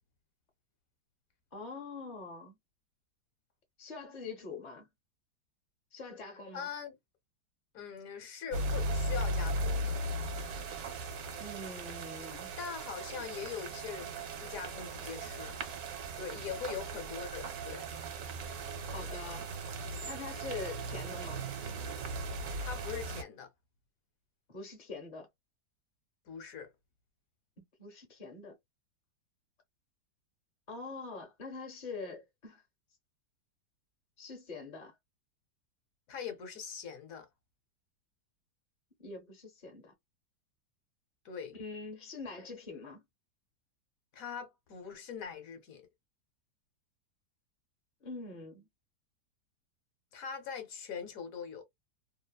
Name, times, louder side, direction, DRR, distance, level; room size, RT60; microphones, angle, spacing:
voice 1, 1.5-2.6 3.8-4.9 5.9-6.7 11.4-12.5 18.9-19.5 20.0-21.5 24.5-25.3 27.6-28.6 30.7-32.6 34.2-34.9 39.0-39.9 41.5-43.0 48.0-48.7, left 3 dB, 40° left, 0.6 m, -44 dB
voice 2, 6.5-7.0 7.7-10.0 12.6-15.6 16.2-17.9 22.6-23.5 26.3-26.7 36.1-37.3 41.2-41.6 44.1-45.9 50.1-51.6, left 7 dB, 65° left, 1.1 m, -42 dB
sound 1, 8.5-23.2, right 1 dB, 70° right, 1.2 m, -38 dB
2.8 x 2.0 x 2.2 m
omnidirectional pair, 1.7 m